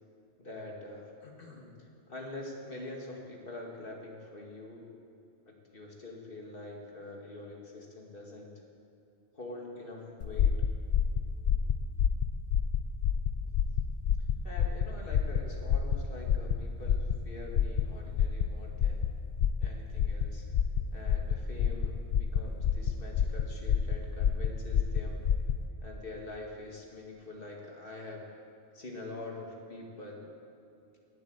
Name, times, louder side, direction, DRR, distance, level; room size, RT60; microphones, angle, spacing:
voice 1, 0.4-4.8 5.5-8.5 9.3-10.5 13.4-13.6 14.4-19.0 19.6-20.4 20.9-25.2 25.8-28.3 28.7-30.3, left 2 dB, 55° left, 0 dB, 2.4 m, -45 dB
sound 1, 10.2-25.6, left 8 dB, 75° left, 0.9 m, -29 dB
18.5 x 8.1 x 8.1 m, 2.6 s
omnidirectional pair, 1.1 m